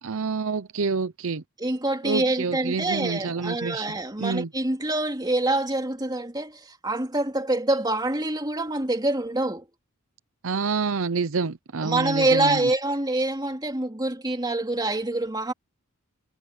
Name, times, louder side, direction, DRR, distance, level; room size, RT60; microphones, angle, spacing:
voice 1, 0.0-1.4 2.0-3.9 4.2-4.5 10.4-12.7, right 4 dB, 70° right, 0.7 m, -27 dB
voice 2, 1.6-9.7 11.8-15.5, right 2 dB, 20° right, 2.8 m, -26 dB
head